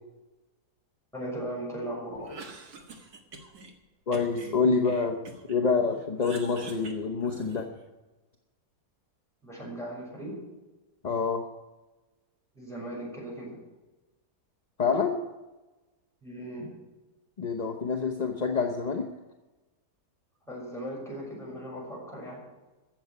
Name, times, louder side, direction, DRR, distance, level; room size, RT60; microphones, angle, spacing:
voice 1, 1.1-2.4 9.4-10.4 12.5-13.6 16.2-16.7 20.4-22.4, right 1 dB, ahead, -4 dB, 6.3 m, -38 dB
Cough, 2.1-3.7 4.1-5.6 5.9-7.8, right 3 dB, 65° right, 2.2 m, -46 dB
voice 2, 4.1-5.2 5.5-7.7 11.0-11.4 14.8-15.2 17.4-19.1, left 5 dB, 35° left, 3 dB, 0.8 m, -27 dB
15.0 x 7.2 x 9.4 m, 1.1 s
omnidirectional pair, 1.8 m